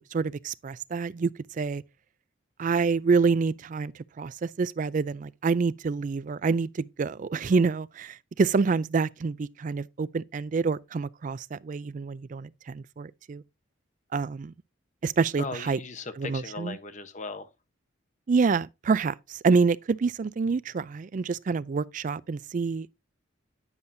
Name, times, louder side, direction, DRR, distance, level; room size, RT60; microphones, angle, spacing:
voice 1, 0.0-1.8 2.6-13.4 14.1-14.5 15.0-15.8 16.2-16.8 18.3-22.9, right 4 dB, 40° right, 0.3 m, -27 dB
voice 2, 15.4-17.5, left 3 dB, 35° left, 0.8 m, -37 dB
9.6 x 7.1 x 2.6 m
head